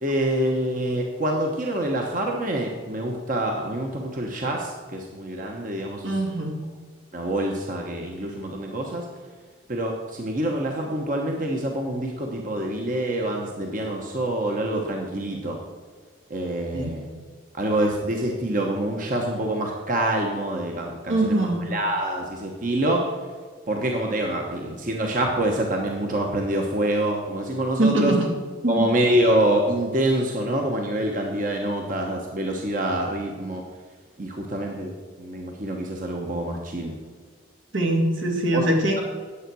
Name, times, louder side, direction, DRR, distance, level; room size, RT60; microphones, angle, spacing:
voice 1, 0.0-6.1 7.1-9.0 9.7-15.6 16.3-17.1 17.6-23.0 23.7-28.1 28.7-33.6 34.2-36.9 38.5-38.7, right 1 dB, 40° right, 1 dB, 1.1 m, -26 dB
voice 2, 6.0-6.6 16.7-16.9 21.1-21.7 27.8-28.3 28.6-28.9 37.7-39.0, right 1 dB, 80° right, 1 dB, 2.2 m, -23 dB
9.9 x 8.0 x 6.1 m, 1.5 s
head